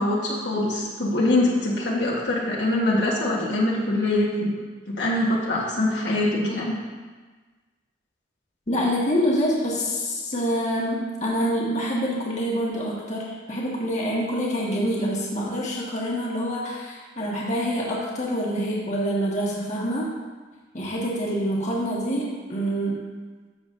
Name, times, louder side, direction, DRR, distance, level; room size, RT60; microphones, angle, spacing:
voice 1, 0.0-4.6 4.9-6.8, left 1 dB, 65° left, -4 dB, 1.4 m, -23 dB
voice 2, 8.7-20.1 20.7-23.0, equal, 40° left, -4 dB, 1.5 m, -26 dB
13.0 x 7.0 x 2.6 m, 1.4 s
head